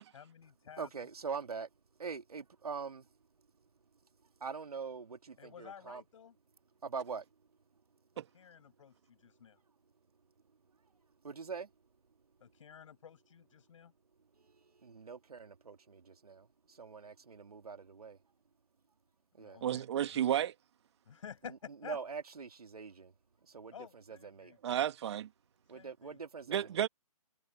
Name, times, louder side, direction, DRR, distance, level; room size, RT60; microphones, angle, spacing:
voice 1, 0.1-1.1 5.4-6.3 8.2-9.6 12.4-13.9 19.4-20.2 21.1-22.0 23.7-24.6 25.7-26.2, left 8 dB, 55° left, 7.3 m, -52 dB
voice 2, 0.8-1.7 2.0-3.0 4.4-6.0 6.8-7.2 11.2-11.7 14.8-16.5 16.8-18.2 19.4-19.6 21.8-23.1 23.5-23.7 24.1-24.5 25.7-26.9, right 5 dB, 80° right, 2.4 m, -43 dB
voice 3, 19.6-20.5 24.6-25.3 26.5-26.9, right 10 dB, 45° right, 2.4 m, -32 dB
hypercardioid pair, 145°, 19 cm